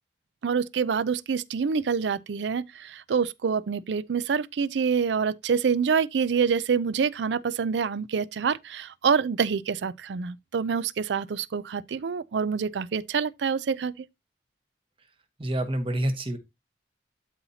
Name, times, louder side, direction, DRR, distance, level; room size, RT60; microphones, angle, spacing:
voice 1, 0.4-14.1, right 6 dB, 75° right, 0.4 m, -26 dB
voice 2, 15.4-16.4, right 1 dB, 30° right, 1.1 m, -27 dB
12.0 x 4.2 x 2.8 m
head